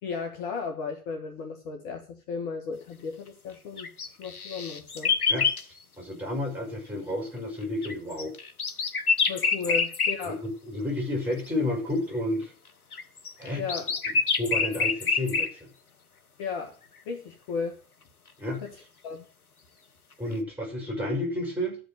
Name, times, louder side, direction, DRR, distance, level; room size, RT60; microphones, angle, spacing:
voice 1, 0.0-3.9 4.2-5.1 9.3-10.4 13.6-13.9 16.4-16.8 17.0-17.8 18.6-19.2, left 5 dB, 35° left, 3 dB, 1.7 m, -35 dB
sound 1, 3.8-5.6 7.8-10.3 11.5-11.6 12.9-15.5, left 4 dB, 80° left, 1.2 m, -27 dB
voice 2, 6.0-8.3 10.2-12.5 13.4-13.6 14.4-15.7 18.4-18.6 20.2-21.8, left 1 dB, 5° right, 1 dB, 5.8 m, -31 dB
13.0 x 5.4 x 7.8 m, 0.39 s
figure-of-eight pair, 105°, 44 cm